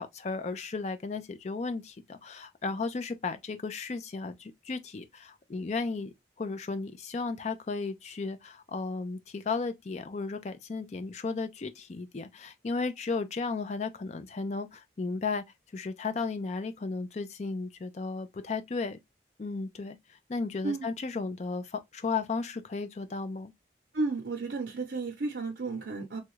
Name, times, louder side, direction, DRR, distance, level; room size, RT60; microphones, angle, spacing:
voice 1, 0.0-15.4 15.7-19.0 19.4-20.0 20.3-23.5, left 4 dB, 40° left, 0.4 m, -34 dB
voice 2, 23.9-26.2, right 3 dB, 75° right, 0.7 m, -33 dB
3.1 x 2.3 x 3.0 m
head